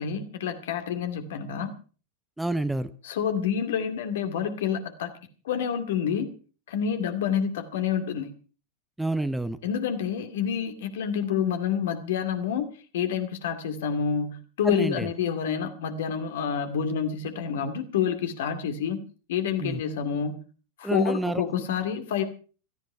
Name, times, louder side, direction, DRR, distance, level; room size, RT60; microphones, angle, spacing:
voice 1, 0.0-1.7 3.0-5.1 5.4-6.3 6.7-8.3 9.6-12.7 12.9-19.0 19.3-20.4 20.8-22.2, left 7 dB, 55° left, 8 dB, 2.3 m, -28 dB
voice 2, 2.4-2.9 9.0-9.6 14.6-15.1 19.6-19.8 20.8-21.4, right 2 dB, 5° right, 13 dB, 0.8 m, -28 dB
16.5 x 14.0 x 4.8 m, 0.38 s
figure-of-eight pair, 90°, 0 cm